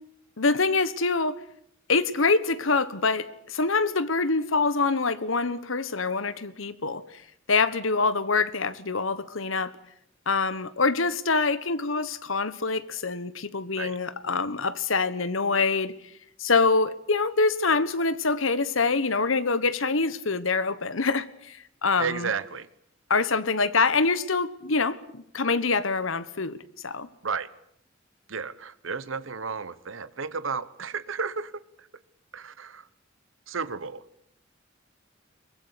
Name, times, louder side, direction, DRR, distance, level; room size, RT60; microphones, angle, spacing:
voice 1, 0.4-1.4 1.9-7.0 7.5-9.7 10.3-15.9 16.4-22.3 23.1-26.6 26.8-27.1, left 4 dB, 80° left, 1.3 m, -25 dB
voice 2, 22.0-22.7 27.2-27.5 28.3-31.5 32.3-32.8 33.5-34.0, right 5 dB, 75° right, 1.0 m, -32 dB
23.0 x 20.5 x 8.4 m
head